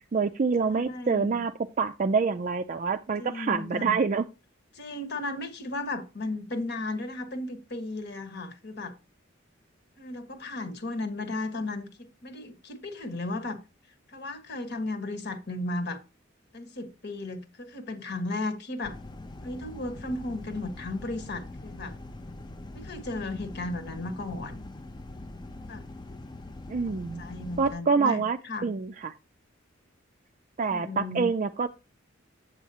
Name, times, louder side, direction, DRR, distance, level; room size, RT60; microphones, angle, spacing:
voice 1, 0.1-4.2 26.7-27.2 27.6-29.1 30.6-31.7, right 5 dB, 40° right, 0.4 m, -26 dB
voice 2, 0.7-1.3 3.2-4.0 4.7-9.0 10.0-13.6 14.1-16.0 16.5-19.0 19.4-22.0 22.7-24.7 25.6-25.9 26.9-28.7 30.7-31.3, left 2 dB, 55° left, 1.4 m, -35 dB
sound 1, 18.8-27.7, left 2 dB, 20° left, 0.5 m, -43 dB
8.5 x 8.0 x 2.8 m
head